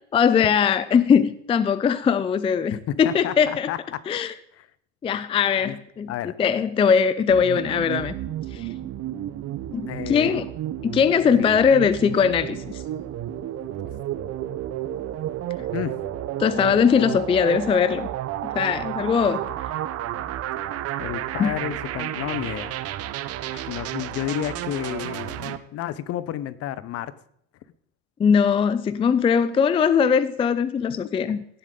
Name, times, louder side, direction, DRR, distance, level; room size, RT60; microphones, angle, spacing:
voice 1, 0.1-3.7 4.1-4.3 5.0-6.1 6.4-8.1 8.5-8.7 9.7-10.5 10.8-12.8 16.4-18.1 18.5-19.4 21.4-21.5 28.2-31.4, left 7 dB, 15° left, 15 dB, 0.4 m, -20 dB
voice 2, 2.7-4.0 4.6-4.7 5.6-5.8 6.1-6.4 9.8-10.4 11.4-11.5 15.7-16.0 21.0-22.7 23.7-27.1 31.0-31.1, left 12 dB, 45° left, 17 dB, 0.8 m, -31 dB
sound 1, 7.3-25.6, right 12 dB, 45° right, 0.9 m, -31 dB
16.5 x 7.4 x 3.8 m, 0.71 s
supercardioid pair, 110°, 33 cm